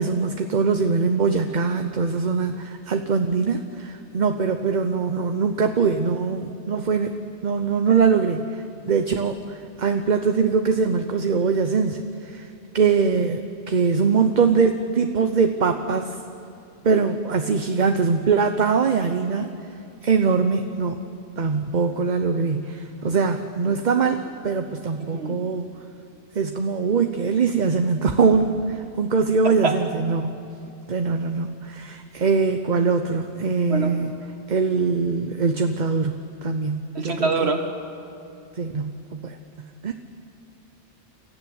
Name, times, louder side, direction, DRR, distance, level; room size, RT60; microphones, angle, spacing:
voice 1, 0.0-7.2 7.4-12.5 12.7-16.2 16.8-19.7 20.0-21.0 21.4-25.7 26.3-30.5 30.9-34.1 34.5-37.5 38.6-39.9, right 5 dB, 45° right, 7 dB, 1.0 m, -22 dB
voice 2, 36.9-37.6, right 4 dB, 65° right, 5 dB, 2.2 m, -24 dB
29.0 x 14.5 x 9.7 m, 2.6 s
omnidirectional pair, 1.2 m